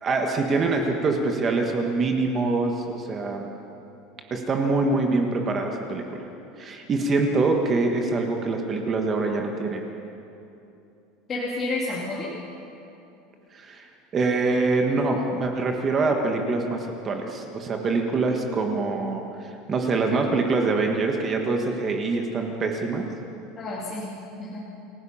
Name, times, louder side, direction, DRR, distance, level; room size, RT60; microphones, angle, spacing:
voice 1, 0.0-3.4 4.3-6.0 6.6-9.8 13.5-13.9 14.1-19.2 19.7-23.0, right 3 dB, 20° right, 3 dB, 1.5 m, -24 dB
voice 2, 11.3-12.3 23.6-24.7, left 2 dB, 20° left, -6 dB, 2.4 m, -30 dB
28.0 x 17.0 x 5.7 m, 2.8 s
cardioid pair, 175°, 0 cm